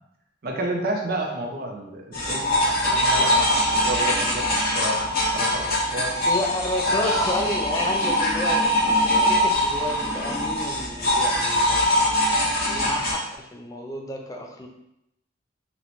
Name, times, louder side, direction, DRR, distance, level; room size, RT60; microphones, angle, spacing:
voice 1, 0.4-4.5 4.7-6.1 6.9-7.3, right 1 dB, 55° right, 1 dB, 0.5 m, -30 dB
sound 1, 2.1-13.1, equal, 50° left, 1.3 m, -22 dB
voice 2, 6.2-8.6 8.9-11.9 12.6-14.7, left 1 dB, 20° left, 2 dB, 0.4 m, -31 dB
4.0 x 2.2 x 2.9 m, 0.84 s
head